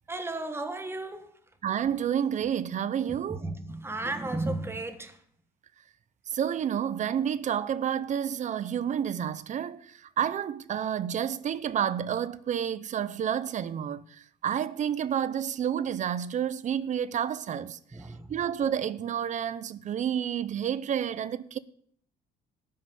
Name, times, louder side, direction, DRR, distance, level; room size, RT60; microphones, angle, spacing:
voice 1, 0.1-1.4 3.1-5.2 17.9-18.3, right 2 dB, 15° right, 1.3 m, -34 dB
voice 2, 1.6-3.4 6.3-14.0 14.4-17.8 18.3-21.6, right 9 dB, 45° right, 0.7 m, -30 dB
13.0 x 5.7 x 9.4 m
cardioid pair, 110°, 17 cm